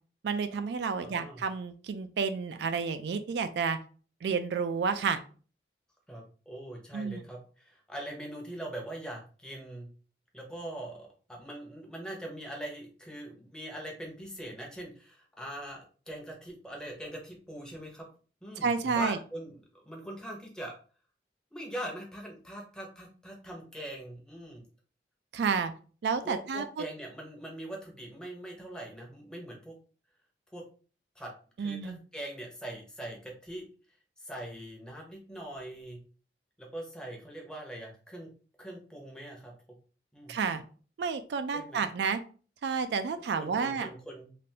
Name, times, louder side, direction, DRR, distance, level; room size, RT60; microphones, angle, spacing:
voice 1, 0.2-3.8 4.2-5.2 6.9-7.2 18.6-19.2 25.3-25.7 26.0-26.9 31.6-32.0 40.3-40.6 41.0-42.2 42.6-43.9, right 5 dB, 75° right, 9 dB, 0.3 m, -30 dB
voice 2, 1.0-1.4 6.1-9.9 10.3-18.1 18.4-20.8 21.5-24.6 26.2-29.7 30.5-30.7 31.2-31.3 31.6-33.7 34.2-36.0 36.6-38.3 38.6-39.5 40.1-40.4 41.5-41.8 43.2-44.3, right 1 dB, 5° left, -1 dB, 0.7 m, -42 dB
3.3 x 2.5 x 2.7 m, 0.39 s
head